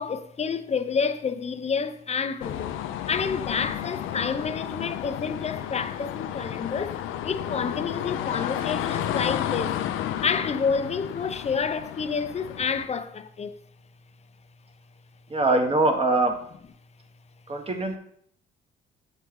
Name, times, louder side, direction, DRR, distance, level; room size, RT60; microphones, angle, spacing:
voice 1, 0.0-2.7 3.1-9.9 10.2-13.6, left 5 dB, 35° left, 0.5 m, -29 dB
sound 1, 2.4-12.9, left 11 dB, 85° left, 0.5 m, -32 dB
voice 2, 15.3-16.4 17.5-18.0, right 2 dB, 30° right, 1.2 m, -22 dB
7.5 x 4.3 x 3.7 m
cardioid pair, 90°, 20 cm